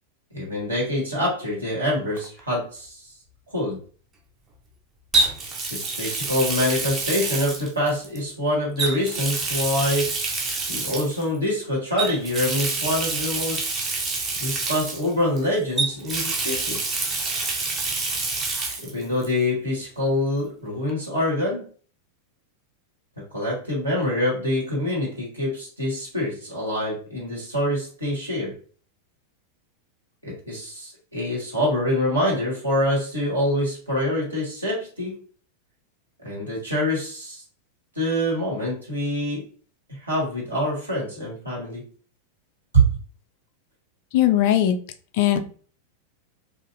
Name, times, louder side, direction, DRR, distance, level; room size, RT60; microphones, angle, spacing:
voice 1, 0.3-3.1 3.5-3.8 5.7-10.1 10.7-13.7 14.4-16.8 18.8-21.7 23.3-28.5 30.2-35.2 36.2-37.4 37.9-39.4 39.9-41.8 42.7-42.9, equal, 80° right, -5 dB, 1.4 m, -25 dB
Water tap faucet, 2.2-2.4 5.1-8.2 8.8-11.2 12.0-15.4 15.8-18.9 19.2-19.3 20.9-21.0, right 3 dB, 25° right, 0.5 m, -27 dB
voice 2, 44.1-44.8 45.2-45.4, left 12 dB, 50° left, 8 dB, 0.3 m, -18 dB
2.6 x 2.4 x 2.6 m, 0.42 s
figure-of-eight pair, 90°, 0 cm